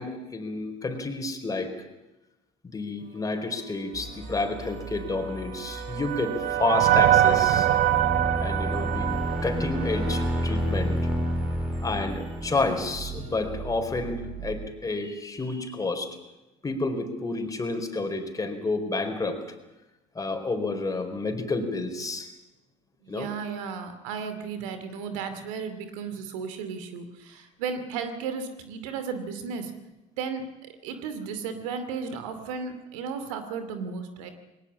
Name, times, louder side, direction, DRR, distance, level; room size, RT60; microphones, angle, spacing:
voice 1, 0.0-1.8 2.6-7.7 8.4-11.0 11.8-16.2 16.6-19.4 20.1-22.3 23.1-23.3, left 3 dB, 20° left, 5 dB, 4.3 m, -30 dB
sound 1, 3.9-14.6, right 3 dB, 35° right, 7.0 m, -41 dB
sound 2, 5.2-10.5, right 12 dB, 50° right, 0.8 m, -24 dB
sound 3, 6.5-14.1, equal, 5° right, 4.3 m, -31 dB
voice 2, 23.0-29.7 30.2-30.4 30.8-34.3, right 6 dB, 75° right, 9 dB, 2.6 m, -34 dB
20.5 x 18.5 x 8.7 m, 0.98 s
hypercardioid pair, 75°, 17 cm